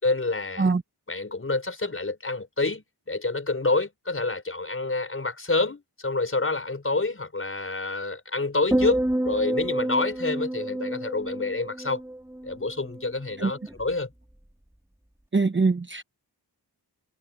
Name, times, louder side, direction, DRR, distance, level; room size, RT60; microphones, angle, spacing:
voice 1, 0.0-0.7 1.1-12.0 12.4-14.1, left 3 dB, 30° left, 6.0 m, -28 dB
sound 1, 8.7-13.1 13.4-13.8, right 1 dB, 5° right, 3.7 m, -29 dB
voice 2, 15.3-16.0, right 4 dB, 30° right, 1.0 m, -22 dB
wide cardioid pair, 105°, 40 cm